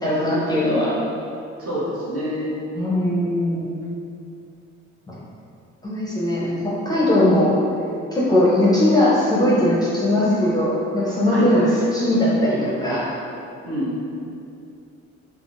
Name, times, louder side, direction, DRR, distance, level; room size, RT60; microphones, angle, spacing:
voice 1, 0.0-0.9 2.7-3.7 5.1-5.2 5.8-7.6 8.1-11.7 11.9-13.0, left 1 dB, 15° left, -8 dB, 0.6 m, -19 dB
voice 2, 1.6-2.5 11.3-11.7 13.6-14.0, equal, 50° right, -8 dB, 1.0 m, -27 dB
3.6 x 2.1 x 2.4 m, 2.6 s
cardioid pair, 90°, 30 cm